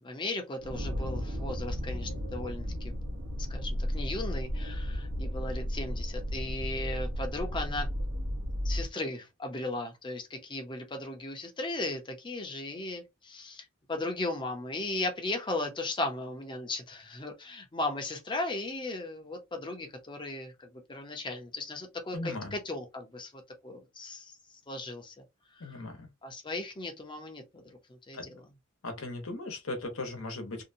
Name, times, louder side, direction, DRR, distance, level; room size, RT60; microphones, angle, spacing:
voice 1, 0.0-2.9 3.5-7.9 8.6-24.4 24.7-25.1 25.6-25.8 26.2-28.4, left 2 dB, 25° left, 0.6 m, -37 dB
sound 1, 0.6-8.9, equal, 75° right, 0.8 m, -34 dB
voice 2, 22.1-22.5 25.6-26.1 28.1-28.2 28.8-30.6, left 2 dB, 75° left, 0.9 m, -37 dB
2.7 x 2.2 x 2.6 m
head